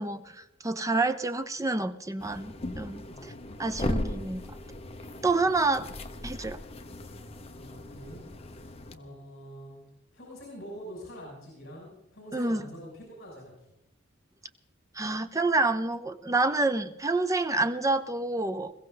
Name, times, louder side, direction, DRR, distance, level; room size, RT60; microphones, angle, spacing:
voice 1, 0.0-3.3 3.6-4.4 5.2-5.9 6.2-6.6 12.3-12.7 14.9-18.7, right 2 dB, 15° right, 0.7 m, -28 dB
sound 1, 2.2-9.0, left 1 dB, 30° left, 1.0 m, -37 dB
voice 2, 3.1-3.4 5.4-5.7 7.6-8.2 8.5-9.8 10.1-13.5, equal, 60° left, 6.2 m, -45 dB
21.5 x 16.0 x 4.0 m
head